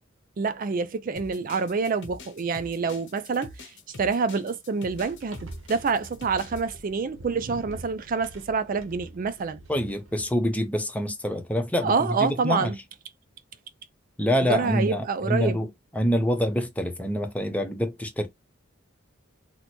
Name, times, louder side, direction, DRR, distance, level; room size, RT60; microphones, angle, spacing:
voice 1, 0.4-3.5 4.0-9.6 11.8-12.8 14.5-15.6, right 5 dB, 45° right, 0.4 m, -27 dB
sound 1, 1.2-6.6, left 3 dB, 60° left, 0.9 m, -44 dB
sound 2, 5.0-10.3, right 2 dB, 65° right, 0.9 m, -45 dB
voice 2, 9.7-12.7 14.2-18.3, equal, 5° left, 0.7 m, -26 dB
3.0 x 2.1 x 4.2 m
head